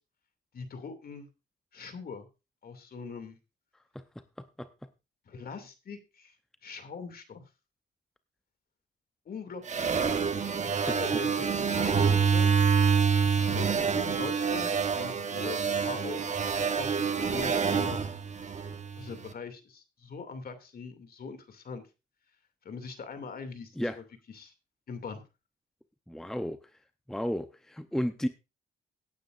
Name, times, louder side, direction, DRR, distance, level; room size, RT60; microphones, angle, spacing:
voice 1, 0.5-1.3 1.7-2.3 2.6-3.4 5.3-6.4 6.6-7.4 9.3-10.2 10.7-12.6 13.2-16.4 16.7-18.0 19.0-21.8 22.6-24.5 24.9-25.2, left 5 dB, 50° left, 8 dB, 2.6 m, -42 dB
voice 2, 4.4-4.7 11.1-11.2 23.8-24.0 26.1-26.6 27.1-28.3, equal, ahead, 9 dB, 0.7 m, -33 dB
sound 1, 9.7-19.1, right 6 dB, 35° right, 1.2 m, -27 dB
17.5 x 9.2 x 2.6 m, 0.28 s
cardioid pair, 90°, 20 cm